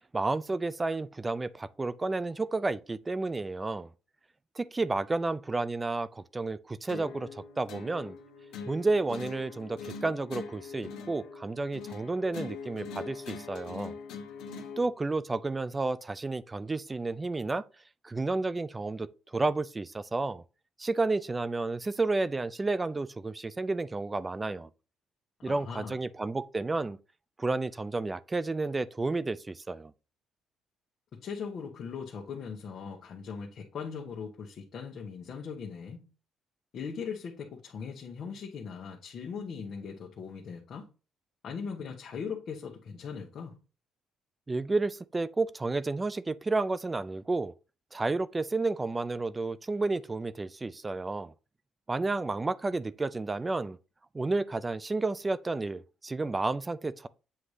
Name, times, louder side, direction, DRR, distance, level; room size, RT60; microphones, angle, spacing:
voice 1, 0.1-3.9 4.6-8.2 8.7-14.0 14.8-17.6 18.0-20.4 20.8-24.7 25.4-27.0 27.4-29.9 44.5-47.5 47.9-51.3 51.9-53.8 54.1-57.1, right 3 dB, 20° right, 0.4 m, -31 dB
sound 1, 6.9-14.9, left 5 dB, 85° left, 1.3 m, -43 dB
voice 2, 25.4-26.0 31.1-36.1 36.7-40.9 41.4-43.6, left 6 dB, 55° left, 1.2 m, -39 dB
7.8 x 2.7 x 4.9 m
cardioid pair, 120°, 0 cm